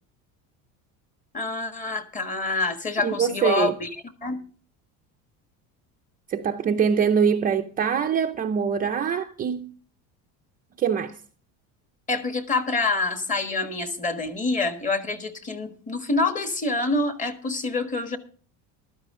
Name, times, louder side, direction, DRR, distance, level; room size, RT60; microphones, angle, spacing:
voice 1, 1.3-3.9 4.2-4.4 12.1-18.2, left 3 dB, 20° left, 1.4 m, -26 dB
voice 2, 3.0-3.7 6.3-9.7 10.8-11.2, right 7 dB, 20° right, 0.6 m, -23 dB
15.0 x 13.0 x 3.7 m
cardioid pair, 170°, 39 cm